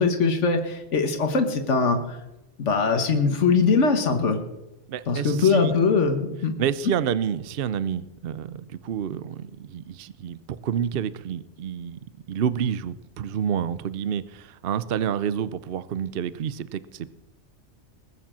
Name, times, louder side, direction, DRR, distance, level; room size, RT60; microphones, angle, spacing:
voice 1, 0.0-2.2 2.6-4.4 5.1-6.5, left 4 dB, 85° left, 5 dB, 1.6 m, -22 dB
voice 2, 4.9-5.7 6.6-12.0 12.3-17.1, right 8 dB, 60° right, 15 dB, 0.8 m, -29 dB
20.5 x 7.3 x 7.4 m, 0.97 s
omnidirectional pair, 1.2 m